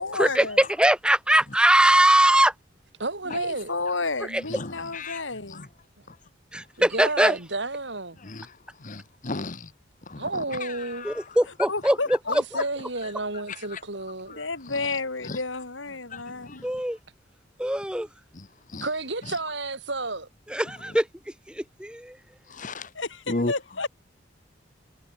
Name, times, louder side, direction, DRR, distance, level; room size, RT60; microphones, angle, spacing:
voice 1, 0.0-0.6 3.2-5.7 11.7-12.6 14.3-16.7 22.9-23.9, left 3 dB, 85° left, 3.8 m, -31 dB
voice 2, 0.8-2.5 4.3-4.4 6.5-7.4 11.0-12.0 16.6-17.0 17.6-18.1 20.5-21.1 21.5-22.2, right 1 dB, 5° right, 1.8 m, -21 dB
voice 3, 3.0-3.7 6.8-8.2 10.2-11.1 12.3-14.4 18.8-20.3, right 2 dB, 65° right, 5.1 m, -31 dB
voice 4, 4.5-5.2 5.5-5.7 6.1-6.2 8.2-8.5 8.8-9.7 10.1-11.2 13.5-13.8 14.4-14.5 15.3-15.4 16.1-16.6 18.3-18.5 18.7-18.9 22.5-22.9 23.3-23.5, left 2 dB, 40° left, 1.2 m, -35 dB
head